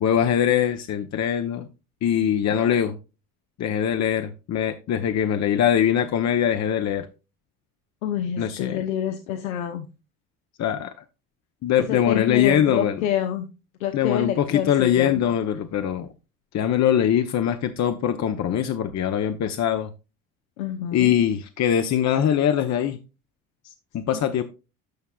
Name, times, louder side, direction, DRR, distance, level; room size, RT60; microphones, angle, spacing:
voice 1, 0.0-1.7 2.0-3.0 3.6-7.1 8.4-8.8 10.6-10.9 11.6-13.0 13.9-16.1 16.5-19.9 20.9-23.0 23.9-24.4, left 9 dB, 40° left, 7 dB, 0.9 m, -22 dB
voice 2, 8.0-9.9 11.8-13.5 13.8-15.3 20.6-21.2 24.1-24.2, left 10 dB, 75° left, 6 dB, 1.0 m, -27 dB
13.0 x 5.6 x 2.3 m, 0.30 s
hypercardioid pair, 60°, 41 cm